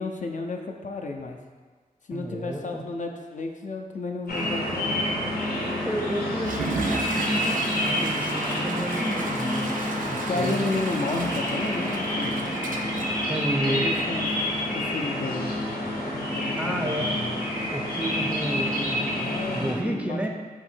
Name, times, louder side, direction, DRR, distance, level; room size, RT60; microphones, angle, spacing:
voice 1, 0.0-1.4 2.1-5.0 10.3-12.4 13.5-14.4 14.7-15.5 16.3-17.4 18.7-20.3, left 3 dB, 55° left, 3 dB, 0.4 m, -32 dB
voice 2, 2.1-2.8 5.8-10.6 13.3-13.9 16.6-17.1 17.7-20.3, right 1 dB, 10° right, 3 dB, 0.5 m, -31 dB
sound 1, 4.3-19.7, left 1 dB, 90° left, 0.8 m, -28 dB
Water / Toilet flush, 6.4-14.1, right 3 dB, 65° right, 0.4 m, -34 dB
3.7 x 2.6 x 4.3 m, 1.5 s
cardioid pair, 50°, 15 cm